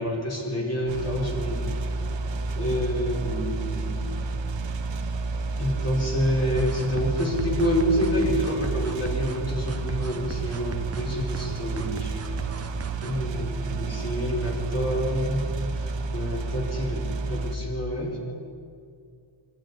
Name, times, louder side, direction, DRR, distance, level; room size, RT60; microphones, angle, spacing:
voice 1, 0.0-1.7 2.5-4.1 5.6-12.5 13.0-18.2, equal, 30° left, -2 dB, 4.9 m, -28 dB
sound 1, 0.9-17.5, right 3 dB, 70° right, 1.5 m, -30 dB
sound 2, 6.6-13.2, right 3 dB, 30° right, 1.0 m, -30 dB
24.0 x 12.0 x 9.9 m, 2.4 s
wide cardioid pair, 145°, 46 cm